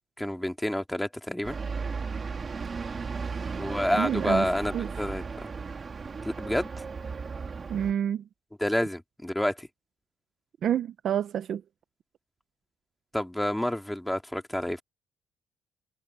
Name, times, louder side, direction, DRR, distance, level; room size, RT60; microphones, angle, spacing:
voice 1, 0.0-1.6 3.6-5.5 6.2-6.8 8.6-9.7 13.1-14.8, left 1 dB, 5° left, 2.2 m, -29 dB
sound 1, 1.4-7.9, right 5 dB, 30° right, 2.8 m, -35 dB
voice 2, 4.0-4.9 7.7-8.2 10.6-11.6, right 9 dB, 50° right, 0.6 m, -28 dB
cardioid pair, 150°, 0 cm